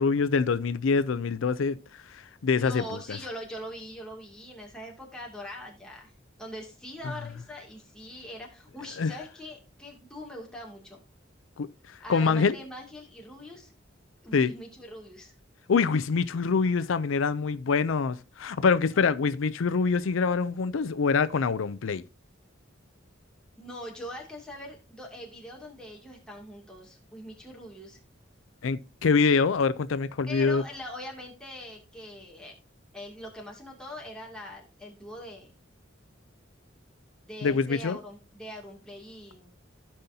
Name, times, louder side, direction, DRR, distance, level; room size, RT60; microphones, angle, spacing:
voice 1, 0.0-3.0 9.0-9.1 11.6-12.6 14.3-14.5 15.7-22.0 28.6-30.6 37.4-38.0, left 5 dB, 80° left, 0.5 m, -25 dB
voice 2, 2.6-6.1 6.4-11.0 12.0-13.7 14.2-15.3 23.6-28.0 30.3-32.5 32.9-35.5 37.3-39.5, equal, 5° left, 2.4 m, -42 dB
15.5 x 5.5 x 2.7 m
head